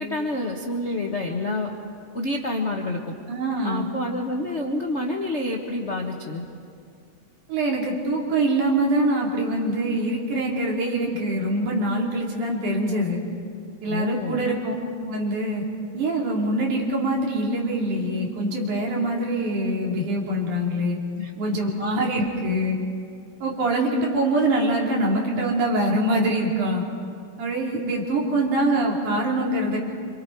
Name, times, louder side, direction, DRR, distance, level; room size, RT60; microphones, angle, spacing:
voice 1, 0.0-1.7 2.1-3.1 3.6-6.4 13.9-14.5 21.2-21.6, left 2 dB, 75° left, 1 dB, 0.6 m, -28 dB
voice 2, 3.3-3.9 7.5-13.2 13.8-14.7 15.0-15.6 15.9-21.0 21.4-22.8 23.4-26.8 27.4-29.8, right 1 dB, 85° right, -2 dB, 4.4 m, -24 dB
26.5 x 26.5 x 4.6 m, 2.3 s
omnidirectional pair, 3.4 m